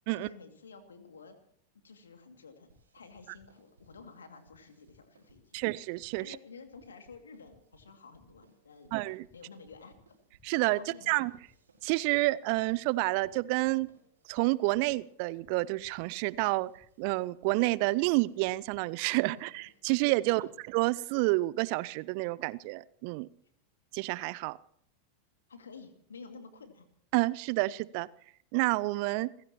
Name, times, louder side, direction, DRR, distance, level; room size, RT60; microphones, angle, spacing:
voice 1, 0.1-1.3 1.8-2.7 2.9-5.7 6.2-8.9 9.3-10.2 10.8-11.3 19.3-19.6 20.3-20.6 25.5-26.9, left 4 dB, 70° left, 7 dB, 2.5 m, -51 dB
sound 1, 2.7-20.5, right 1 dB, 70° right, 5.2 m, -64 dB
voice 2, 5.5-6.4 8.9-9.3 10.4-10.8 11.1-11.3 11.8-13.9 14.3-16.7 17.0-23.3 23.9-24.6 27.1-28.1 28.5-29.3, right 22 dB, 45° right, 21 dB, 0.5 m, -29 dB
29.5 x 15.5 x 3.0 m, 0.64 s
figure-of-eight pair, 90°, 0 cm